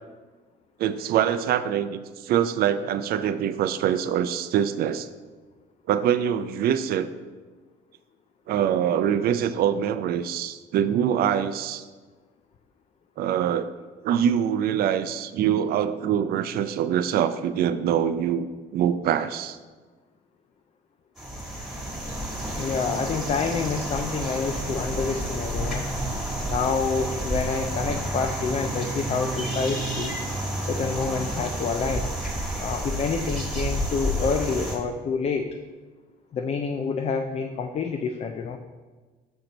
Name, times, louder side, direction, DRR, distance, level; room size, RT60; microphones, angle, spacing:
voice 1, 0.8-5.1 5.9-7.1 8.5-11.8 13.2-13.7 14.0-18.5 18.7-19.6, right 9 dB, 65° right, 12 dB, 0.4 m, -24 dB
sound 1, 21.2-34.8, right 1 dB, ahead, 1.5 m, -30 dB
voice 2, 22.6-25.9 26.4-30.1 30.6-32.1 32.6-35.5 36.3-38.6, left 5 dB, 40° left, 5 dB, 0.4 m, -28 dB
6.4 x 4.4 x 3.9 m, 1.3 s
cardioid pair, 110°, 17 cm